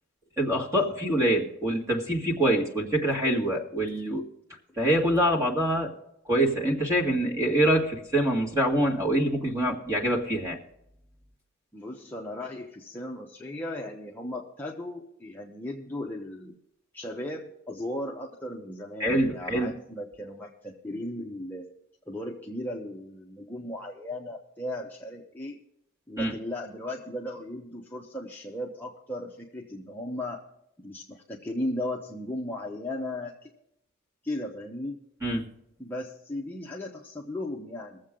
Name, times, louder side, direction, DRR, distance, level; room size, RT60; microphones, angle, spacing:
voice 1, 0.4-4.2 4.8-5.9 6.3-10.6 19.0-19.7 26.2-26.3 35.2-35.4, right 1 dB, 15° right, 0 dB, 1.9 m, -25 dB
voice 2, 11.7-16.5 16.9-21.7 22.1-25.6 26.1-30.4 30.8-33.5 34.2-35.0 35.8-38.0, left 1 dB, 10° left, -2 dB, 0.8 m, -36 dB
21.5 x 7.6 x 3.7 m, 0.78 s
head